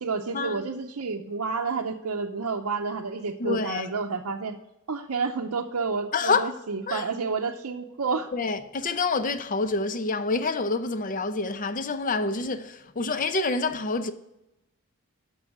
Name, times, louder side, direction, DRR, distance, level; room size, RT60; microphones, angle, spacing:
voice 1, 0.0-4.6 4.9-8.3, right 4 dB, 75° right, 0.7 m, -30 dB
voice 2, 3.4-3.9 6.1-6.5 6.9-7.0 8.3-14.1, left 4 dB, 35° left, 0.6 m, -27 dB
12.5 x 5.5 x 4.8 m
head